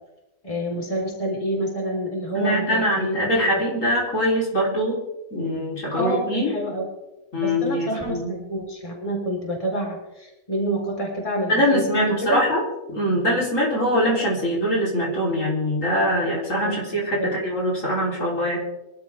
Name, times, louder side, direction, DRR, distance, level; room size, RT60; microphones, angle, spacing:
voice 1, 0.4-3.5 5.9-6.9 7.4-12.4 16.6-16.8 17.2-17.4, right 1 dB, 20° left, -1 dB, 4.1 m, -28 dB
voice 2, 2.3-5.0 5.3-6.5 7.3-8.3 11.5-12.6 12.9-18.6, equal, 55° left, -4 dB, 4.2 m, -23 dB
25.0 x 12.5 x 3.5 m, 0.99 s
omnidirectional pair, 1.6 m